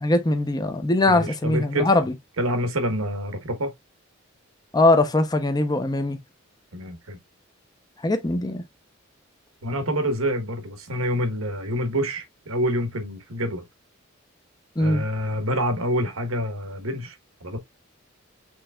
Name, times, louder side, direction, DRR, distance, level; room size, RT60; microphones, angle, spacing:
voice 1, 0.0-2.1 4.7-6.2 8.0-8.6 14.8-15.0, left 2 dB, 20° left, 0.6 m, -21 dB
voice 2, 1.1-1.9 2.4-3.7 6.7-7.2 9.6-13.6 14.8-17.2 17.4-17.6, equal, 90° right, 1.3 m, -27 dB
6.1 x 3.4 x 2.3 m
head